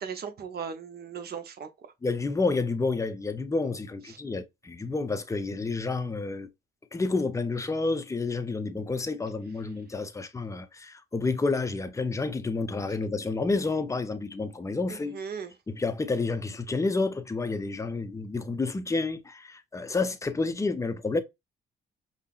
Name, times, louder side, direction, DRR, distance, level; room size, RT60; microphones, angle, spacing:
voice 1, 0.0-1.7 4.1-4.2 14.9-15.5, right 6 dB, 50° right, 0.8 m, -37 dB
voice 2, 2.0-6.5 6.9-15.2 15.7-21.2, left 3 dB, 15° left, 0.5 m, -29 dB
5.4 x 2.0 x 2.4 m
cardioid pair, 90°, 20 cm